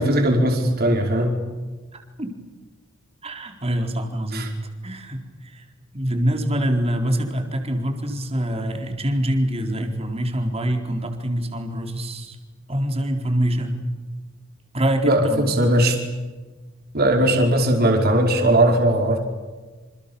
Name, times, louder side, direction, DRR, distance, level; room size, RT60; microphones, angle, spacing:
voice 1, 0.0-1.3 4.3-4.5 15.0-16.0 16.9-19.2, right 1 dB, 45° right, 2 dB, 5.0 m, -19 dB
voice 2, 1.9-2.3 3.2-4.6 4.8-5.7 5.9-12.4 12.7-13.8 14.7-15.5 17.5-17.8, equal, 30° right, 4 dB, 4.2 m, -25 dB
28.5 x 27.5 x 7.1 m, 1.3 s
head